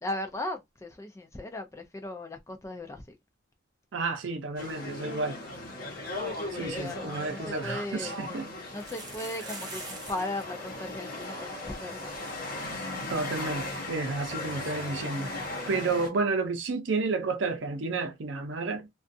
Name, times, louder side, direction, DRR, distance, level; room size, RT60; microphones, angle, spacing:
voice 1, 0.0-3.2 6.6-8.2 8.7-12.3, left 1 dB, 15° left, 0.3 m, -37 dB
voice 2, 3.9-5.4 6.5-8.5 13.1-15.3 15.7-18.9, right 3 dB, 70° right, 0.6 m, -31 dB
sound 1, 4.6-16.1, left 2 dB, 50° left, 0.9 m, -37 dB
sound 2, 8.7-10.4 10.7-10.8 11.0-11.2 11.8-11.9 12.2-12.3 14.3-14.4, right 3 dB, 20° right, 0.7 m, -43 dB
2.4 x 2.3 x 2.6 m
head